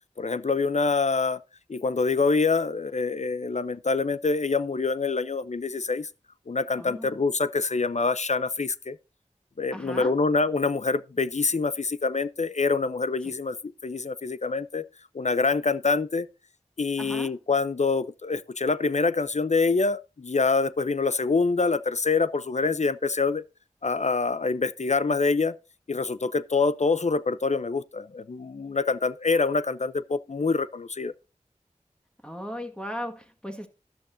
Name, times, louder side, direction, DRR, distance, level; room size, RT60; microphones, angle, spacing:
voice 1, 0.2-1.4 1.7-6.1 6.5-9.0 9.6-14.8 15.1-16.3 16.8-23.4 23.8-25.5 25.9-31.1, left 4 dB, 60° left, 0.5 m, -25 dB
voice 2, 6.8-7.1 9.7-10.1 13.2-13.3 17.0-17.3 32.2-33.7, equal, 5° left, 1.7 m, -36 dB
13.0 x 11.5 x 2.6 m
wide cardioid pair, 45°, 13 cm